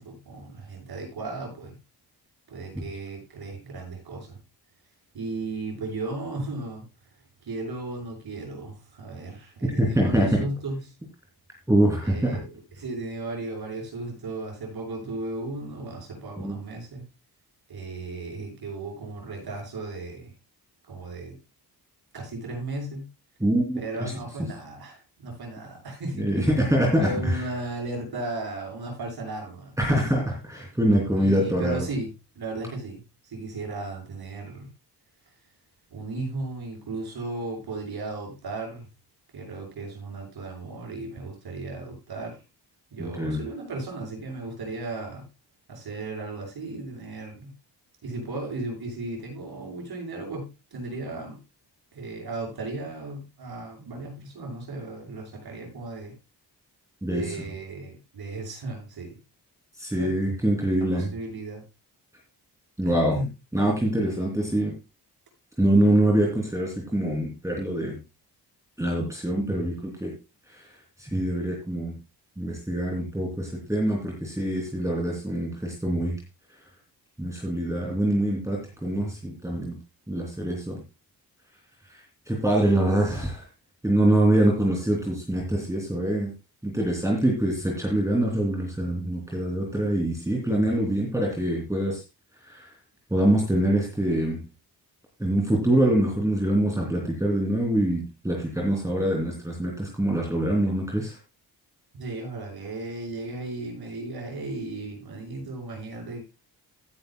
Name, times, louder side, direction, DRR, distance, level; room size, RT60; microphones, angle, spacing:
voice 1, 0.0-1.7 2.5-4.4 5.1-6.8 7.4-10.8 12.0-12.5 12.8-17.0 17.7-20.3 20.9-21.4 22.1-23.1 23.8-26.4 27.0-30.2 31.2-34.7 35.9-38.9 39.3-42.4 42.9-45.3 45.7-47.5 48.0-51.4 51.9-56.1 57.0-59.2 60.0-60.2 60.9-61.6 62.8-63.3 101.9-106.2, right 2 dB, 70° right, 1 dB, 6.7 m, -35 dB
voice 2, 9.8-10.4 11.7-12.4 16.4-16.6 23.4-24.1 26.2-27.4 29.8-31.8 43.0-43.4 57.0-57.4 59.8-61.1 62.8-63.2 63.5-64.7 65.6-68.0 68.8-70.1 70.5-70.7 71.0-71.9 72.4-76.2 77.2-79.7 80.1-80.8 82.3-83.4 83.8-86.3 86.6-92.0 92.5-92.7 93.1-94.4 95.2-101.2, right 1 dB, 10° right, -2 dB, 3.0 m, -24 dB
15.5 x 10.5 x 2.2 m, 0.27 s
wide cardioid pair, 160°, 40 cm